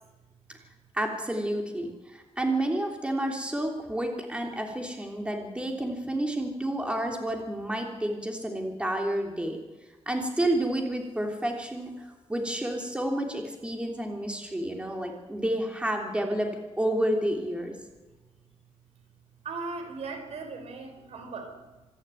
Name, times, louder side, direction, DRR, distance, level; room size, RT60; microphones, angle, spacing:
voice 1, 0.9-9.6 10.0-16.5 16.8-17.7, right 1 dB, 10° right, 2 dB, 3.2 m, -30 dB
voice 2, 19.4-21.6, right 4 dB, 75° right, 6 dB, 4.7 m, -38 dB
26.5 x 11.5 x 9.2 m, 1.2 s
wide cardioid pair, 130°, 11 cm